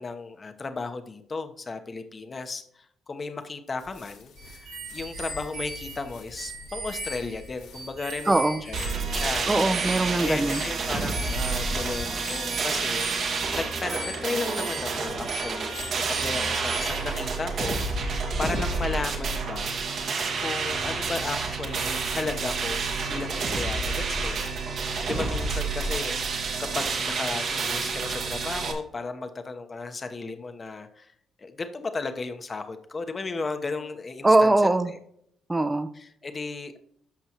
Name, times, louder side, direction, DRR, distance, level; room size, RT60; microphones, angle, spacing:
voice 1, 0.0-9.5 10.2-15.8 16.1-19.8 20.4-22.8 23.1-26.2 26.7-31.1 31.4-35.0 35.9-36.8, left 3 dB, 35° left, 7 dB, 1.1 m, -35 dB
sound 1, 3.8-12.0, left 3 dB, 85° left, 2.1 m, -47 dB
sound 2, 4.4-17.3, right 3 dB, 85° right, 3.4 m, -39 dB
voice 2, 8.3-8.6 9.5-10.6 34.2-34.9 35.5-35.9, right 2 dB, 15° right, 12 dB, 0.7 m, -21 dB
sound 3, 8.7-28.7, right 4 dB, 65° right, 2.0 m, -29 dB
13.5 x 5.4 x 3.0 m, 0.71 s
cardioid pair, 90°, 0 cm